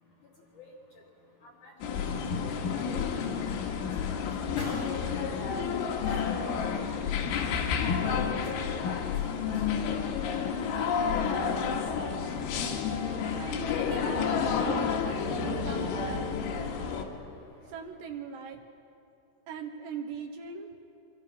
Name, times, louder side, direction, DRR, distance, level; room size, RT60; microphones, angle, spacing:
sound 1, 1.8-17.0, left 6 dB, 75° left, 4.0 m, -30 dB
voice 1, 2.4-2.8 4.4-4.9 5.4-5.5 6.2-6.5 7.3-7.5 7.8-8.3 8.8-8.9 9.3-9.4 9.9-10.1 10.4-10.9 11.3-11.4, left 2 dB, 60° left, -1 dB, 2.2 m, -44 dB
voice 2, 13.3-17.1 17.7-18.6 19.5-20.8, right 6 dB, 70° right, 5 dB, 2.9 m, -41 dB
27.5 x 24.5 x 5.7 m, 2.8 s
omnidirectional pair, 5.7 m